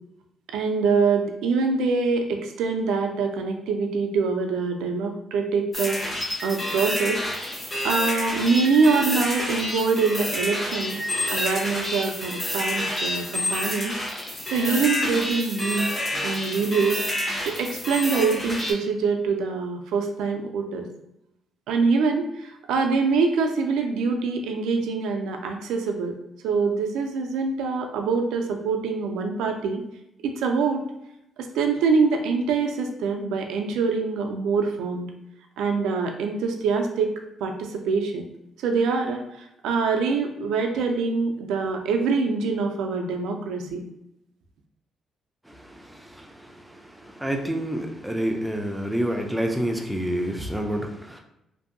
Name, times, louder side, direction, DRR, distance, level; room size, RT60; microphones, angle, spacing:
voice 1, 0.5-7.2 7.8-11.0 11.3-14.0 14.5-15.9 16.2-17.0 17.4-20.9 21.7-26.1 26.4-29.8 30.2-30.8 31.4-35.1 35.6-37.1 37.4-38.2 38.6-43.8, right 4 dB, 90° right, 4 dB, 0.4 m, -24 dB
sound 1, 5.7-18.7, left 1 dB, 35° left, 1.0 m, -29 dB
voice 2, 45.4-51.2, right 1 dB, 5° right, 2 dB, 0.4 m, -29 dB
2.6 x 2.6 x 2.5 m, 0.83 s
cardioid pair, 90°, 0 cm